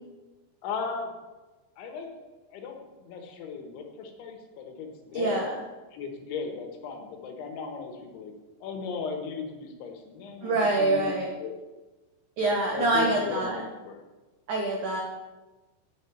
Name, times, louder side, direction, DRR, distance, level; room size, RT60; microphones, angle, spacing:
voice 1, 0.6-1.1 1.8-2.1 2.5-5.5 5.9-8.3 8.6-11.1 11.4-11.5 12.4-14.0, left 5 dB, 85° left, 3 dB, 3.7 m, -36 dB
voice 2, 5.1-5.5 10.4-11.3 12.4-13.6 14.5-15.0, right 2 dB, 85° right, 0 dB, 1.7 m, -25 dB
9.0 x 6.2 x 8.3 m, 1.2 s
omnidirectional pair, 5.3 m